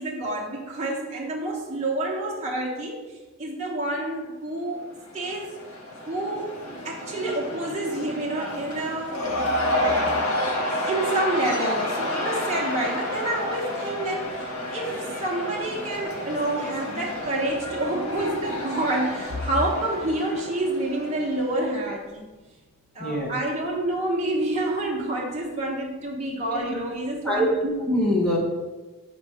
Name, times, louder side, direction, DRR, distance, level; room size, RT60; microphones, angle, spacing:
voice 1, 0.0-3.0 3.4-5.6 6.1-6.5 6.8-9.3 10.9-22.2 22.9-27.6, right 1 dB, 30° right, -4 dB, 1.0 m, -28 dB
Cheering / Crowd, 4.9-21.8, left 1 dB, 90° left, 1.5 m, -30 dB
voice 2, 23.0-23.3 26.5-26.6 27.2-28.4, equal, 5° left, -4 dB, 1.3 m, -24 dB
7.2 x 4.2 x 4.9 m, 1.2 s
head